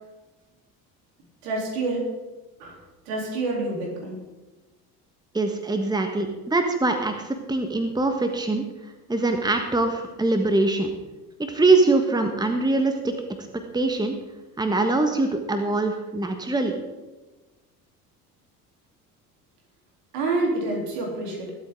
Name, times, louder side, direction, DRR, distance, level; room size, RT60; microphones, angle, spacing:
voice 1, 1.4-2.1 2.6-2.8 3.1-4.2 20.1-21.5, right 2 dB, 70° right, -1 dB, 3.7 m, -27 dB
voice 2, 5.3-8.7 9.1-10.9 11.4-13.1 13.7-14.2 14.6-16.8, right 2 dB, 10° right, 5 dB, 1.5 m, -23 dB
20.0 x 8.4 x 3.8 m, 1.1 s
figure-of-eight pair, 60°, 47 cm